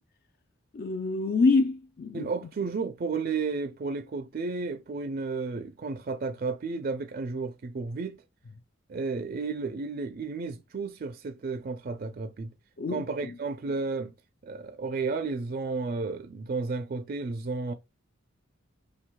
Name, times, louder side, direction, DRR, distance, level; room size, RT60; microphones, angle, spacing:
voice 1, 0.7-2.3 12.8-13.3, left 3 dB, 50° left, 0.4 m, -26 dB
voice 2, 2.1-8.2 8.9-12.5 12.9-14.1 14.4-17.7, right 4 dB, 45° right, 0.4 m, -32 dB
5.2 x 4.5 x 2.2 m
head